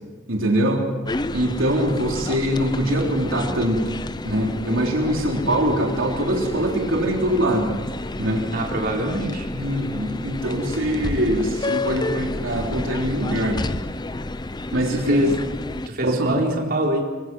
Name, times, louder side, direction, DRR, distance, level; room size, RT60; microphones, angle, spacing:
voice 1, 0.3-0.9 1.3-3.8 4.2-7.7 8.2-8.4 9.5-13.7 14.7-15.3 16.0-16.4, right 1 dB, 75° right, 0 dB, 3.7 m, -23 dB
sound 1, 1.1-15.9, left 2 dB, 20° left, 0.6 m, -30 dB
voice 2, 8.5-9.5 14.9-15.3 15.9-17.0, right 1 dB, 50° right, -1 dB, 4.1 m, -24 dB
24.0 x 23.5 x 6.2 m, 1.3 s
head